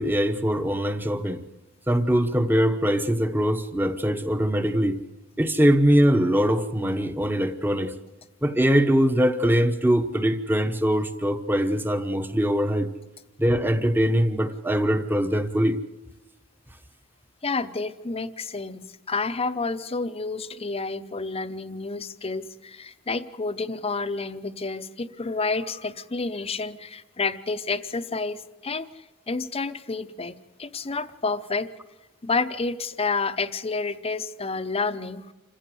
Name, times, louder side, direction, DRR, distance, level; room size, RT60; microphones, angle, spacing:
voice 1, 0.0-1.4 1.9-5.0 5.4-7.9 8.4-12.9 13.4-15.8, equal, 10° right, 1.0 m, -22 dB
voice 2, 17.4-28.9 29.3-31.7 32.2-35.3, left 4 dB, 30° left, 0.7 m, -29 dB
27.0 x 15.0 x 7.7 m
head